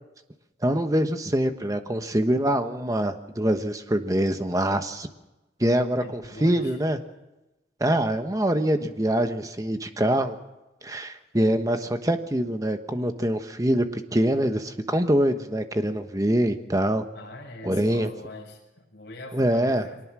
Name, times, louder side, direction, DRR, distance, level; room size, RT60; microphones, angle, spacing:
voice 1, 0.6-5.1 5.6-7.0 7.8-10.4 10.8-17.0 17.6-18.1 19.3-19.9, right 1 dB, 20° right, 8 dB, 1.1 m, -24 dB
voice 2, 6.0-6.7 17.1-18.6 18.9-20.0, left 2 dB, 55° left, 0 dB, 6.7 m, -42 dB
24.0 x 19.0 x 6.1 m, 1.0 s
head